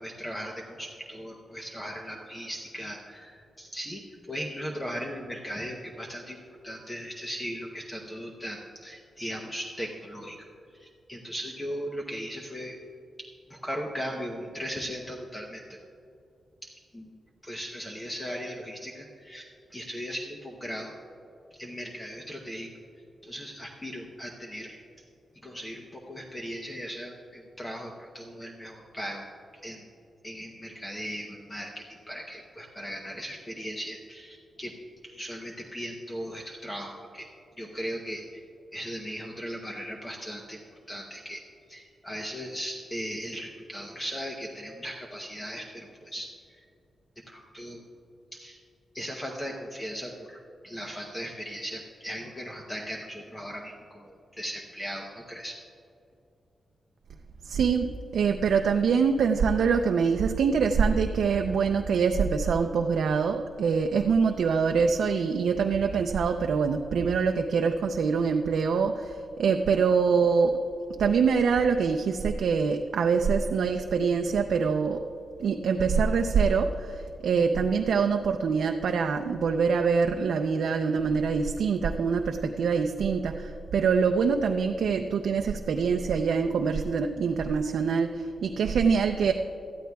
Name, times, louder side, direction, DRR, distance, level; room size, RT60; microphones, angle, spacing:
voice 1, 0.0-4.0 4.3-6.4 6.6-10.5 10.7-12.8 13.2-15.8 16.6-17.1 17.4-20.9 21.5-22.7 23.2-24.8 25.4-29.2 29.6-29.9 30.2-34.7 35.0-37.3 37.6-38.4 38.7-40.6 40.9-41.4 41.7-46.6 47.3-47.8 48.3-48.6 48.9-55.6, equal, 15° left, 0 dB, 0.8 m, -38 dB
voice 2, 57.5-70.6 71.0-75.0 75.4-89.3, right 5 dB, 80° right, 4 dB, 0.5 m, -24 dB
18.5 x 13.0 x 2.3 m, 2.6 s
wide cardioid pair, 175°, 0 cm